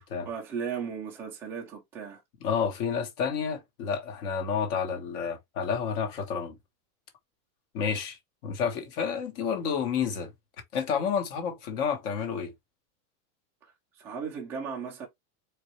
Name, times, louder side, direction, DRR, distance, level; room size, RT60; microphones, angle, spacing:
voice 1, 0.2-2.2 13.6-13.7 14.0-15.1, right 6 dB, 5° right, 0.4 m, -36 dB
voice 2, 2.4-6.5 7.7-8.2 8.4-10.3 10.7-12.5, left 6 dB, 35° left, 1.2 m, -30 dB
4.4 x 3.0 x 3.1 m
supercardioid pair, 170°, 45 cm